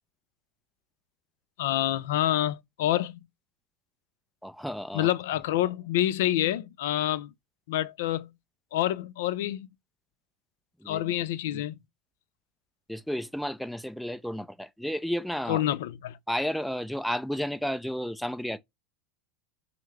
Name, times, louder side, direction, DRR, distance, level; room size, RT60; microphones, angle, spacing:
voice 1, 1.6-3.2 4.9-7.3 7.7-8.3 8.7-9.7 10.9-11.8 15.5-16.2, left 13 dB, 75° left, 0.5 m, -27 dB
voice 2, 4.4-5.1 10.8-11.1 11.5-11.6 12.9-15.6 16.3-18.6, equal, ahead, 0.5 m, -32 dB
5.6 x 2.1 x 3.1 m
hypercardioid pair, 105°, 0 cm